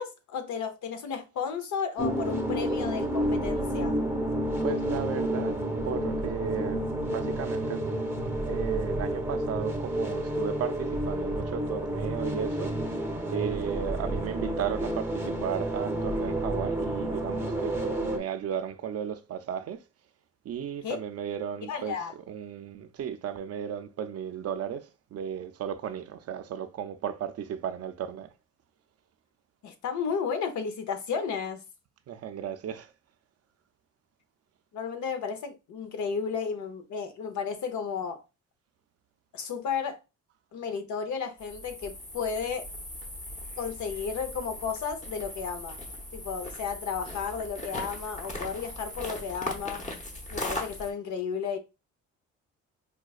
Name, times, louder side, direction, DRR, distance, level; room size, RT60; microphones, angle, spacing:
voice 1, 0.0-3.9 20.8-21.0 21.7-22.1 29.6-31.6 34.7-38.2 39.3-40.0 40.5-42.7 43.6-45.8 46.1-49.8 50.3-51.6, left 6 dB, 70° left, 0.8 m, -33 dB
sound 1, 2.0-18.2, right 1 dB, 10° right, 0.7 m, -30 dB
voice 2, 4.6-7.8 8.4-12.8 13.3-19.8 20.4-22.0 22.3-28.3 32.1-32.9, right 9 dB, 55° right, 0.5 m, -35 dB
sound 2, 41.4-50.9, left 1 dB, 25° left, 0.9 m, -39 dB
4.8 x 2.2 x 2.4 m
cardioid pair, 90°, 30 cm